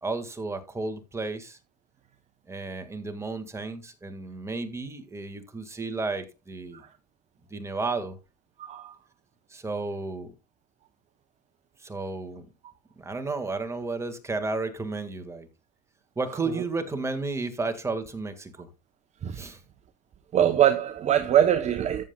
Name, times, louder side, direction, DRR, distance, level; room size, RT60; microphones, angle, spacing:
voice 1, 0.0-1.6 2.5-6.8 7.5-8.2 9.5-10.3 11.8-12.5 13.0-15.5 16.2-18.7 19.3-19.6, right 3 dB, 15° right, 1.7 m, -32 dB
voice 2, 8.6-8.9 16.4-16.6 19.2-19.4 20.3-22.0, right 10 dB, 35° right, 0.8 m, -23 dB
14.0 x 7.6 x 2.3 m
supercardioid pair, 100°, 21 cm